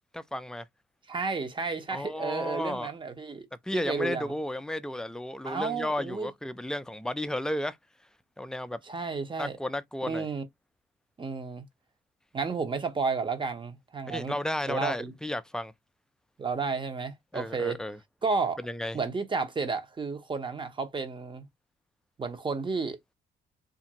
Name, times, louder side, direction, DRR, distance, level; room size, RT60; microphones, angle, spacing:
voice 1, 0.1-0.7 1.9-2.9 3.6-7.8 8.4-8.8 9.4-10.3 14.1-15.7 17.3-18.0 18.6-19.0, left 1 dB, 5° left, 0.3 m, -33 dB
voice 2, 1.1-3.5 3.7-4.3 5.4-6.3 8.9-9.6 10.1-10.4 11.2-11.6 12.3-14.3 14.7-15.1 16.4-17.8 18.2-18.6 18.9-21.4 22.2-23.0, right 4 dB, 25° right, 0.7 m, -32 dB
2.8 x 2.5 x 2.7 m
cardioid pair, 90°, 20 cm